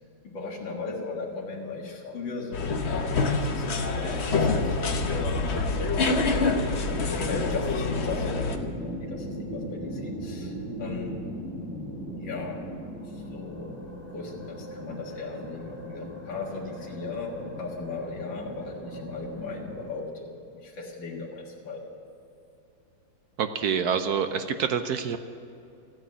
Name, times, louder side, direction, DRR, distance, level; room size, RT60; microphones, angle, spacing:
voice 1, 0.2-5.9 6.9-11.1 12.1-12.7 13.0-13.8 14.1-21.9, left 3 dB, 70° left, -4 dB, 2.5 m, -37 dB
sound 1, 2.5-8.6, left 3 dB, 45° left, 1.0 m, -26 dB
sound 2, 4.9-19.9, equal, 5° right, 2.9 m, -39 dB
voice 2, 23.4-25.2, right 7 dB, 65° right, 8 dB, 1.0 m, -27 dB
14.5 x 9.2 x 8.7 m, 2.7 s
omnidirectional pair, 2.2 m